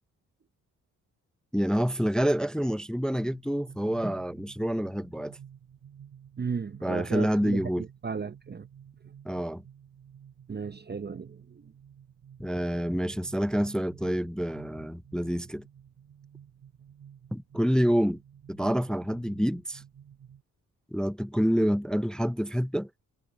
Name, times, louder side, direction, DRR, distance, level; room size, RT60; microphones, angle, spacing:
voice 1, 1.5-5.4 6.8-7.9 9.3-9.6 12.4-15.7 17.3-18.2 18.5-19.8 20.9-22.9, equal, ahead, 0.4 m, -27 dB
sound 1, 3.1-20.4, right 8 dB, 75° right, 4.1 m, -52 dB
voice 2, 6.4-8.7 10.5-11.7, right 5 dB, 30° right, 0.7 m, -35 dB
cardioid pair, 65°, 33 cm